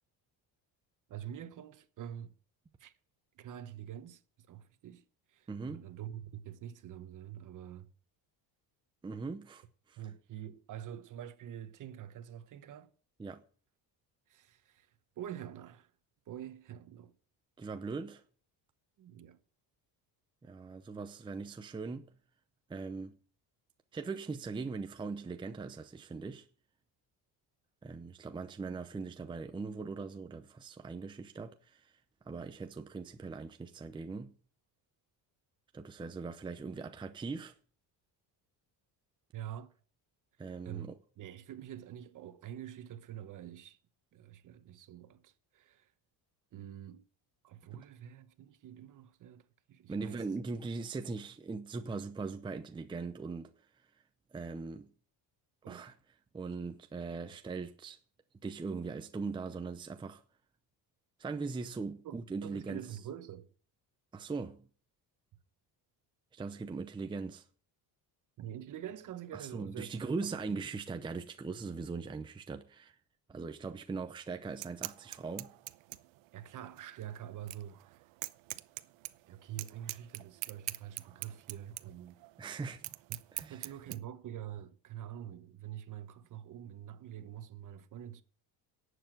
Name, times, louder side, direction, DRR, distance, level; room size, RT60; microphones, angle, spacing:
voice 1, 1.1-2.3 2.8-2.9 3.3-7.9 10.0-12.9 14.3-14.9 15.2-15.9 16.3-17.1 19.0-19.4 39.3-39.7 40.6-43.8 44.1-45.9 46.5-47.1 47.4-50.2 55.6-56.0 62.0-63.5 68.4-70.0 70.3-70.6 76.3-78.1 79.3-82.2 83.5-88.2, right 10 dB, 45° right, 1.2 m, -46 dB
voice 2, 5.5-5.8 9.0-10.0 13.2-13.4 17.6-18.2 20.4-22.1 22.7-23.2 23.9-26.5 27.8-32.0 32.2-34.3 35.7-37.6 40.4-41.0 47.7-47.8 49.9-53.5 54.3-54.9 55.7-55.9 56.3-58.0 58.4-60.2 61.2-62.8 64.1-64.7 66.3-67.5 69.3-73.0 73.3-75.5 82.4-82.9 83.3-83.7, right 4 dB, 10° right, 0.7 m, -40 dB
sound 1, 74.5-84.0, right 20 dB, 85° right, 0.8 m, -44 dB
11.5 x 8.1 x 7.7 m
cardioid pair, 155°, 42 cm